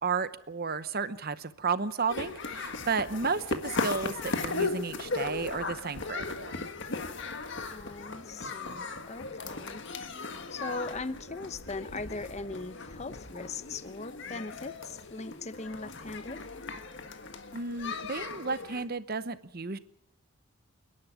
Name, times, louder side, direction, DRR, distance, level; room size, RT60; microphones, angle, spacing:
voice 1, 0.0-6.7 17.5-19.8, right 5 dB, 45° right, 14 dB, 0.9 m, -33 dB
sound 1, 2.1-18.8, left 3 dB, 55° left, 1.6 m, -37 dB
voice 2, 7.7-9.8 10.5-16.4, left 3 dB, 30° left, 14 dB, 0.8 m, -39 dB
28.5 x 11.0 x 9.2 m, 0.78 s
head